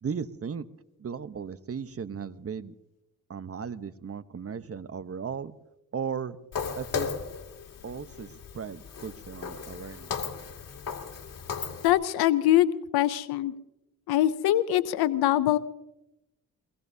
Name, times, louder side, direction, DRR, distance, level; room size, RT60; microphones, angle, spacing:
voice 1, 0.0-0.7 1.0-2.7 3.3-5.5 5.9-6.4 6.8-7.1 7.8-10.1, right 6 dB, 40° right, 13 dB, 1.0 m, -36 dB
Walk footsteps, 6.5-11.9, left 6 dB, 60° left, 2.4 m, -36 dB
voice 2, 11.8-13.5 14.1-15.6, left 13 dB, 85° left, 14 dB, 0.6 m, -23 dB
23.5 x 22.5 x 2.7 m, 0.93 s
supercardioid pair, 55°, 36 cm